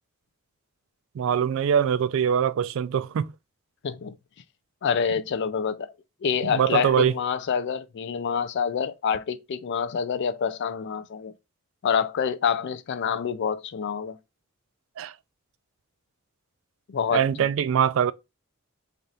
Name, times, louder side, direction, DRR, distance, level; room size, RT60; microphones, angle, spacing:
voice 1, 1.2-3.3 6.4-7.1 15.0-15.1 17.1-18.1, right 8 dB, 65° right, 0.3 m, -23 dB
voice 2, 3.8-4.2 4.8-5.9 6.2-11.3 11.8-14.2 16.9-17.5, left 6 dB, 55° left, 0.4 m, -27 dB
3.4 x 2.5 x 4.0 m
head